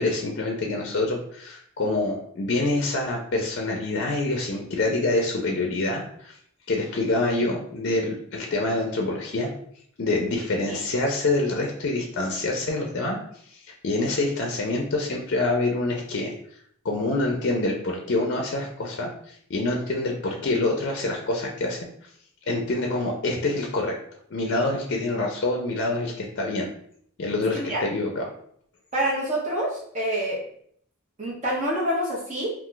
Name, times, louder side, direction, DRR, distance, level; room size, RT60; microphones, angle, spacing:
voice 1, 0.0-6.3 6.7-9.5 10.0-13.2 13.5-13.6 13.8-16.3 16.8-21.8 22.5-23.9 24.3-26.7 27.2-28.2, left 2 dB, 50° left, 1 dB, 0.4 m, -26 dB
voice 2, 27.5-27.8 28.9-30.4 31.2-32.5, right 1 dB, 35° right, -4 dB, 0.6 m, -27 dB
2.4 x 2.3 x 3.7 m, 0.65 s
head